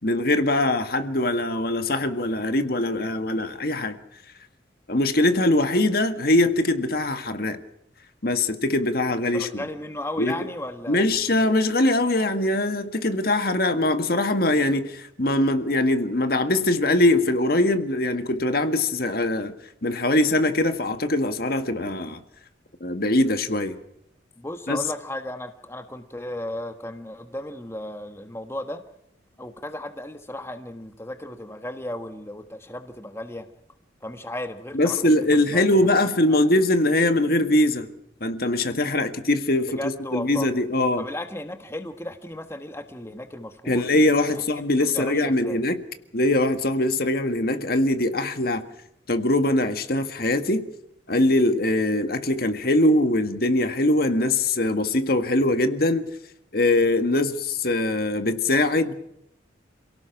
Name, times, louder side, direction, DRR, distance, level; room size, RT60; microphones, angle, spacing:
voice 1, 0.0-4.0 4.9-7.6 8.2-9.6 10.2-10.3 10.9-19.5 19.8-22.2 22.8-23.8 24.7-24.8 34.7-37.9 38.2-39.7 40.1-41.0 43.7-45.8 46.1-48.6 49.1-50.6 51.1-56.1 56.5-58.9, left 1 dB, 55° left, 1.8 m, -22 dB
voice 2, 9.3-11.0 11.3-11.4 24.4-28.8 29.4-33.5 34.0-36.4 39.7-40.5 41.0-43.9 44.3-44.4 44.9-45.6, left 1 dB, 15° left, 1.4 m, -35 dB
28.5 x 17.5 x 6.0 m
head